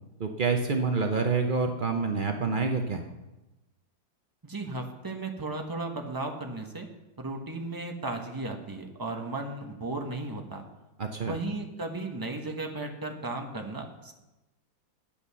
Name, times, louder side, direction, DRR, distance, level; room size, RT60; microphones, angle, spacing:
voice 1, 0.2-3.0 11.0-11.4, right 4 dB, 65° right, 4 dB, 0.4 m, -27 dB
voice 2, 4.4-6.9 7.2-10.6 11.2-14.1, right 2 dB, 15° right, 3 dB, 0.9 m, -35 dB
10.0 x 8.7 x 6.9 m, 1.0 s
omnidirectional pair, 2.1 m